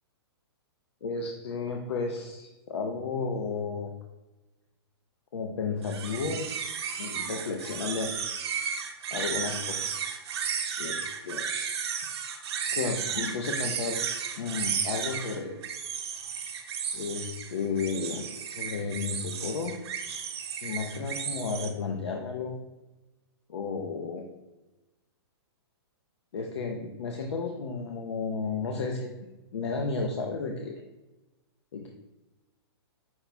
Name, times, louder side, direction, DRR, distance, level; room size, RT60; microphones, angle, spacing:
voice 1, 1.0-3.9 5.3-6.5 7.0-8.1 9.1-10.0 10.8-11.0 11.2-11.5 12.7-14.0 14.4-15.6 16.9-19.7 20.6-22.5 23.5-24.2 26.3-29.1 29.5-30.8 31.7-31.9, left 4 dB, 85° left, 2 dB, 0.6 m, -33 dB
sound 1, 5.8-21.7, right 7 dB, 70° right, 0.8 m, -34 dB
5.7 x 2.2 x 4.1 m, 1.0 s
hypercardioid pair, 150°, 14 cm